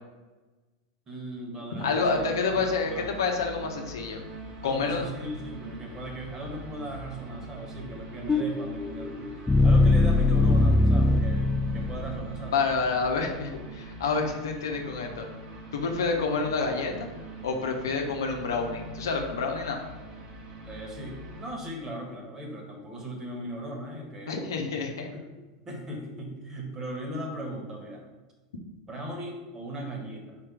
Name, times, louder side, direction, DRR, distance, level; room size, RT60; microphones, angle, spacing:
voice 1, 1.1-3.1 4.6-9.3 9.6-12.6 20.6-24.5 25.1-25.2 25.6-28.0 28.9-30.4, right 1 dB, 25° right, 1 dB, 1.6 m, -38 dB
sound 1, 1.7-21.5, right 1 dB, 45° right, 1.4 m, -43 dB
voice 2, 1.8-4.2 4.6-5.1 12.5-15.3 15.7-17.1 17.4-19.8 24.3-25.1, left 4 dB, 75° left, 2 dB, 0.8 m, -28 dB
sound 2, 8.3-12.4, left 2 dB, 10° left, 0.3 m, -22 dB
4.4 x 4.4 x 5.0 m, 1.2 s
figure-of-eight pair, 85°, 2 cm